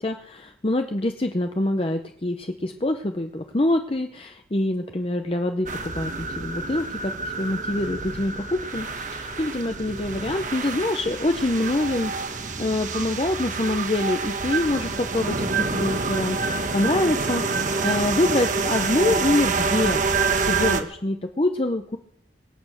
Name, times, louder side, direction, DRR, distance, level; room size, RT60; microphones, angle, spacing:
voice 1, 0.0-20.1 20.4-22.0, left 1 dB, 30° left, 5 dB, 0.8 m, -25 dB
sound 1, 5.7-20.8, right 4 dB, 40° right, 1.3 m, -27 dB
23.5 x 8.7 x 6.4 m, 0.69 s
head